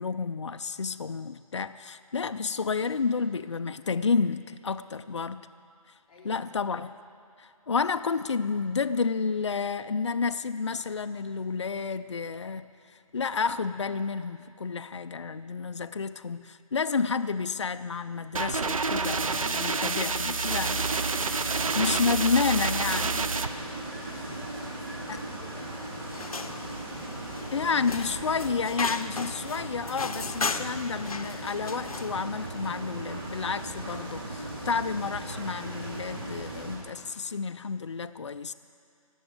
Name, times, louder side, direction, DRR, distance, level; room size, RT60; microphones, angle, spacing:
voice 1, 0.0-5.5 6.2-6.9 7.4-12.7 13.1-20.9 21.8-23.3 24.1-24.3 27.5-38.5, left 5 dB, 50° left, 10 dB, 0.4 m, -30 dB
voice 2, 6.1-6.8 21.3-22.2 24.3-26.6, left 2 dB, 20° left, -10 dB, 3.2 m, -52 dB
sound 1, 18.3-23.5, right 4 dB, 65° right, 0.7 m, -28 dB
sound 2, 20.4-36.8, right 1 dB, 35° right, 2.9 m, -38 dB
sound 3, 26.1-32.2, left 4 dB, 70° left, 0.8 m, -36 dB
18.0 x 7.0 x 7.9 m, 2.5 s
hypercardioid pair, 175°, 19 cm